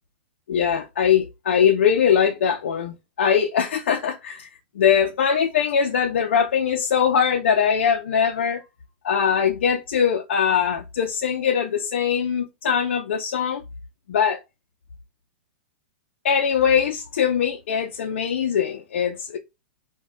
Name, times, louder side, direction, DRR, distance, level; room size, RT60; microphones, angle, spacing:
voice 1, 0.5-4.5 4.8-8.6 9.0-13.6 14.1-14.4 16.2-19.4, left 7 dB, 90° left, 0.4 m, -21 dB
2.2 x 2.0 x 3.7 m
supercardioid pair, 165°, 6 cm